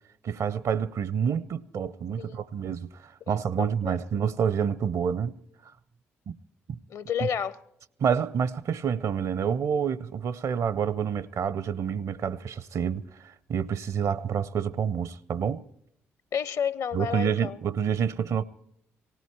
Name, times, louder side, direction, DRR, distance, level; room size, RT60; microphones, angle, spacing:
voice 1, 0.2-5.3 6.3-6.4 6.7-6.8 8.0-15.6 16.9-18.4, right 7 dB, 50° right, 0.6 m, -28 dB
voice 2, 3.3-4.0 6.9-7.5 16.3-17.6, left 7 dB, 55° left, 0.7 m, -31 dB
18.5 x 16.0 x 4.6 m
figure-of-eight pair, 45°, 7 cm